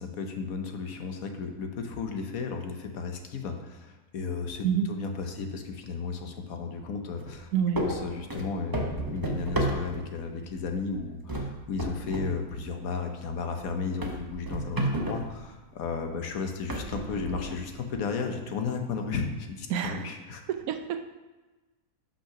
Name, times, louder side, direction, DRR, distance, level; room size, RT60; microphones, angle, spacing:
voice 1, 0.0-7.5 7.8-20.4, left 5 dB, 65° left, 5 dB, 1.2 m, -34 dB
sound 1, 7.2-7.4 7.7-10.2 10.6-11.0 11.3-12.3 12.7-12.8 13.3-13.4 14.0-15.4 16.1-16.2 16.7-17.7, right 1 dB, 20° right, 0.6 m, -32 dB
voice 2, 7.5-7.8 19.7-20.0 20.5-21.0, right 8 dB, 75° right, 8 dB, 1.0 m, -27 dB
5.7 x 5.7 x 5.8 m, 1.2 s
omnidirectional pair, 1.6 m